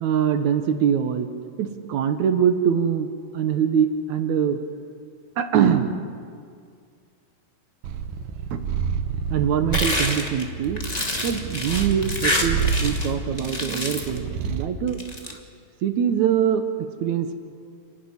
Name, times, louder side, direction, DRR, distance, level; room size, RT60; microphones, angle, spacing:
voice 1, 0.0-1.3 1.6-4.6 5.4-5.9 8.5-8.6 9.3-10.8 11.2-15.4 15.8-17.3, right 8 dB, 65° right, 8 dB, 2.3 m, -23 dB
Purr, 7.8-14.8, right 6 dB, 90° right, 2.9 m, -29 dB
sound 1, 9.7-13.1 13.4-14.2 14.9-15.3, left 1 dB, 15° left, 1.5 m, -27 dB
29.5 x 12.0 x 9.7 m, 2.1 s
omnidirectional pair, 3.9 m